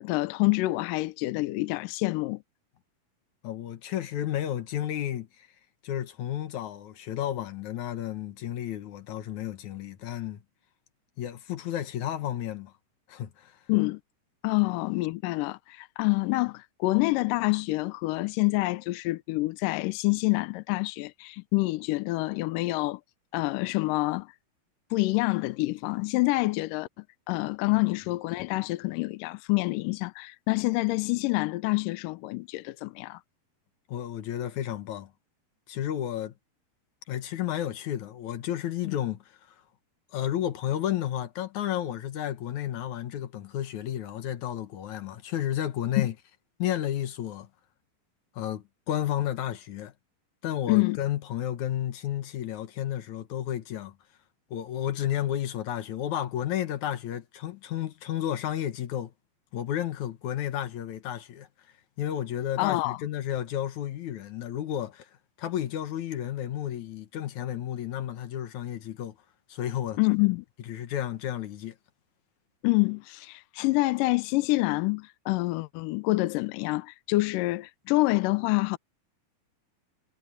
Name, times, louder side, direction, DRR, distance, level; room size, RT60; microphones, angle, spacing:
voice 1, 0.0-2.4 13.7-14.0 14.4-23.0 23.3-24.3 24.9-26.9 27.3-33.2 38.9-39.0 46.0-46.1 50.7-51.0 62.6-63.0 70.0-70.5 72.6-78.8, left 22 dB, 80° left, 2.1 m, -27 dB
voice 2, 3.4-5.5 5.8-10.4 11.2-12.7 13.1-13.6 33.9-35.1 35.7-36.3 37.1-39.4 40.1-46.1 46.6-47.5 48.4-49.9 50.4-53.9 54.5-59.1 59.5-61.5 62.0-65.1 65.4-69.2 69.5-70.0 70.7-71.8, left 11 dB, 65° left, 2.3 m, -32 dB
omnidirectional pair, 4.2 m